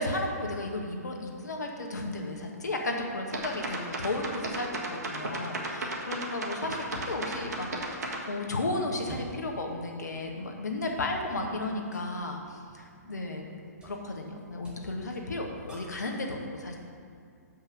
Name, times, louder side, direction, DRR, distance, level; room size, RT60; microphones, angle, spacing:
voice 1, 0.0-13.4 13.8-16.8, left 2 dB, 80° left, 2 dB, 1.4 m, -34 dB
sound 1, 3.3-8.2, right 2 dB, 70° right, 1.5 m, -34 dB
sound 2, 7.0-16.1, right 2 dB, 10° right, 1.7 m, -53 dB
7.4 x 5.5 x 5.4 m, 2.3 s
hypercardioid pair, 130°, 9 cm